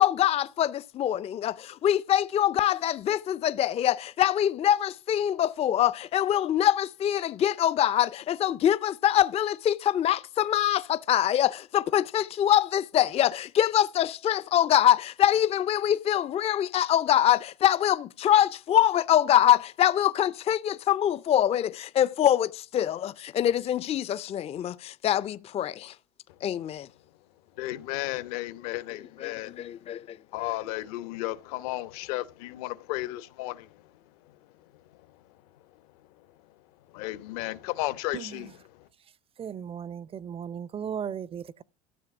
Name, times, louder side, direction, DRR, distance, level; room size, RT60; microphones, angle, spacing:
voice 1, 0.0-25.9 26.4-26.9 29.2-30.0 30.4-30.5, left 11 dB, 30° left, 0.5 m, -24 dB
voice 2, 27.6-29.6 30.3-33.7 36.9-38.6, left 17 dB, 70° left, 1.1 m, -33 dB
voice 3, 39.4-41.6, right 8 dB, 30° right, 0.5 m, -36 dB
13.0 x 7.4 x 6.0 m
supercardioid pair, 95°, 19 cm